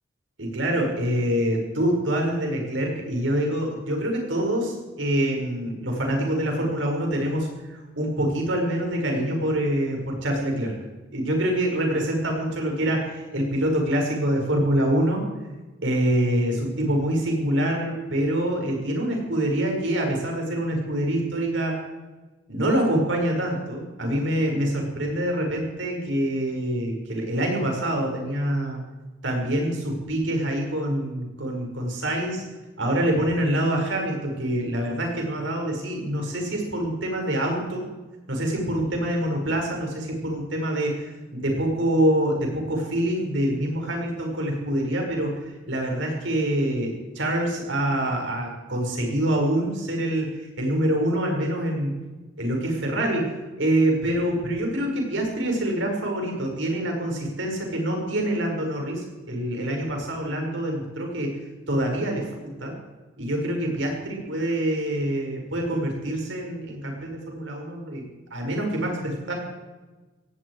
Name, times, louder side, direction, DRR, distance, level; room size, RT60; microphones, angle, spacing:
voice 1, 0.4-10.7 11.1-15.2 15.8-21.8 22.5-28.8 29.2-32.4 32.8-37.9 38.3-52.0 52.4-53.3 53.6-61.4 61.7-62.7 63.2-68.0 68.3-69.3, right 1 dB, 75° right, 1 dB, 5.4 m, -25 dB
18.0 x 16.5 x 4.8 m, 1.2 s
head